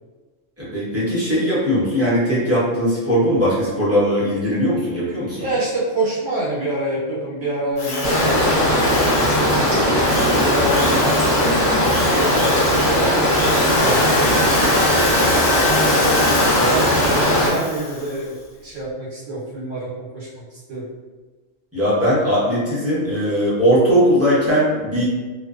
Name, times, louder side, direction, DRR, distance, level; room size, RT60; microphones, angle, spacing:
voice 1, 0.6-5.4 21.7-25.0, equal, 15° right, -9 dB, 0.6 m, -19 dB
voice 2, 5.3-13.1 13.7-15.6 16.0-18.3 18.6-20.9, right 2 dB, 75° right, -7 dB, 1.1 m, -28 dB
Drill, 7.8-18.2, left 2 dB, 80° left, 1.0 m, -26 dB
sound 1, 8.0-17.5, equal, 45° left, 1.0 m, -18 dB
2.5 x 2.2 x 2.3 m, 1.3 s
omnidirectional pair, 1.3 m